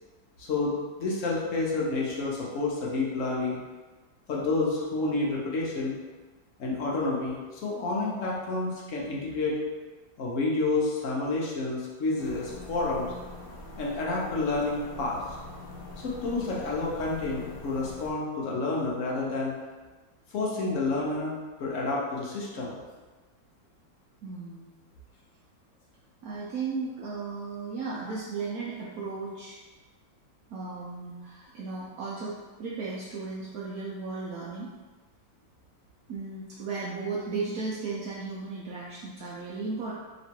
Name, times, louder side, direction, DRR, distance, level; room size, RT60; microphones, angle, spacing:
voice 1, 0.4-0.7 1.0-3.6 4.3-6.0 6.6-9.6 10.2-13.1 13.8-15.2 16.0-19.6 20.3-21.3 21.6-22.7, left 3 dB, 60° left, -4 dB, 0.8 m, -29 dB
sound 1, 12.2-18.1, left 1 dB, 90° left, 0.5 m, -43 dB
voice 2, 24.2-24.7 26.2-29.6 30.5-34.7 36.1-39.9, right 4 dB, 75° right, -6 dB, 0.8 m, -35 dB
3.1 x 2.9 x 4.4 m, 1.3 s
omnidirectional pair, 2.1 m